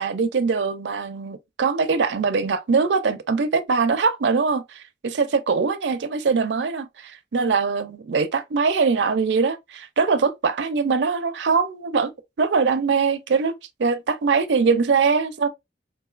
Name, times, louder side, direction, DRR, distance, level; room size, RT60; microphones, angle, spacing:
voice 1, 0.0-12.1 12.4-13.5 13.8-15.5, right 5 dB, 75° right, 0.5 m, -22 dB
3.8 x 2.6 x 2.4 m
head